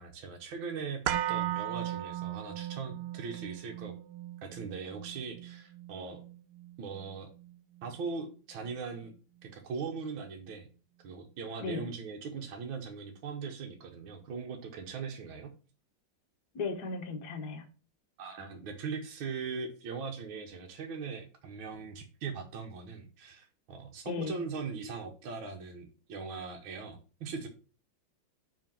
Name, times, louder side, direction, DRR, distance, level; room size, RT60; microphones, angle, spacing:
voice 1, 0.0-4.0 4.4-6.2 6.8-7.3 7.8-9.1 9.4-10.7 11.0-15.5 18.2-27.5, right 5 dB, 70° right, 1 dB, 1.7 m, -40 dB
sound 1, 1.1-9.1 9.4-9.5, right 12 dB, 90° right, 1.5 m, -38 dB
voice 2, 16.5-17.6 24.1-24.4, left 4 dB, 55° left, 3 dB, 1.7 m, -36 dB
5.3 x 5.1 x 5.7 m, 0.36 s
omnidirectional pair, 2.3 m